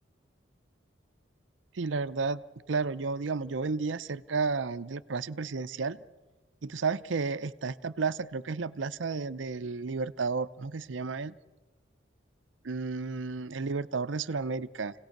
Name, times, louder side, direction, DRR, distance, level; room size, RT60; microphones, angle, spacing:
voice 1, 1.7-2.4 2.7-6.0 6.6-11.3 12.6-14.9, right 4 dB, 80° right, 14 dB, 0.6 m, -32 dB
28.5 x 17.5 x 6.6 m, 1.2 s
head